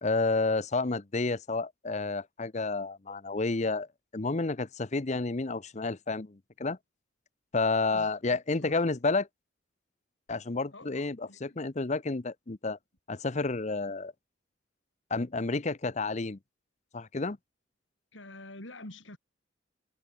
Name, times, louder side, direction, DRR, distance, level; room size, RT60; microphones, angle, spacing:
voice 1, 0.0-3.9 4.1-6.8 7.5-9.3 10.3-12.8 13.1-14.1 15.1-16.4 16.9-17.4, left 3 dB, 40° left, 0.8 m, -30 dB
voice 2, 7.9-8.9 10.7-11.7 18.1-19.2, left 1 dB, 85° left, 5.9 m, -48 dB
head